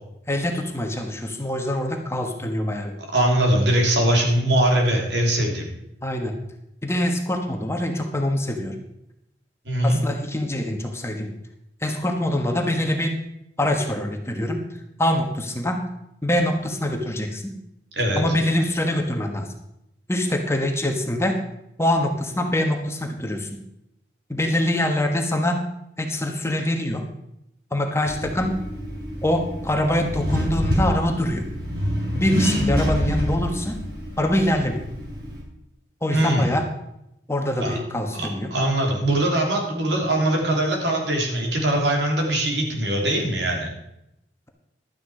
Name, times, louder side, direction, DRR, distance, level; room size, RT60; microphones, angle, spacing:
voice 1, 0.3-2.9 6.0-6.4 6.8-8.8 9.8-11.3 11.8-13.1 13.6-14.6 15.0-15.8 16.2-17.5 18.2-19.5 20.1-21.4 21.8-23.5 24.3-25.6 26.0-27.0 27.7-28.5 29.2-31.4 32.1-33.8 34.2-34.8 36.0-36.7 37.3-38.5, left 1 dB, 15° left, 3 dB, 1.3 m, -24 dB
voice 2, 3.1-5.7 9.6-10.0 17.9-18.2 36.1-36.5 37.6-37.8 38.1-43.7, right 1 dB, 85° right, 0 dB, 3.3 m, -21 dB
Accelerating revving vroom, 28.1-35.4, equal, 60° right, 4.2 m, -27 dB
12.0 x 9.2 x 5.0 m, 0.82 s
head